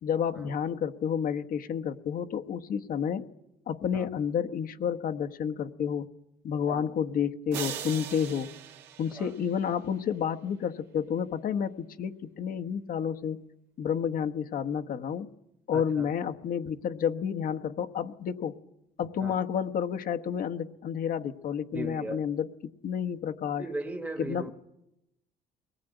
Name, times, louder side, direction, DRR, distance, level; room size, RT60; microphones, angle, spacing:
voice 1, 0.0-3.3 3.7-6.1 6.4-8.5 9.0-13.5 13.8-15.3 15.7-18.6 19.0-22.5 22.8-23.7 24.2-24.5, left 8 dB, 55° left, 1.3 m, -30 dB
sound 1, 7.5-9.9, right 9 dB, 90° right, 2.4 m, -40 dB
voice 2, 15.7-16.1 19.2-19.3 21.7-22.2 23.6-24.5, right 2 dB, 10° right, 1.5 m, -37 dB
22.5 x 19.5 x 9.1 m
cardioid pair, 110°, 17 cm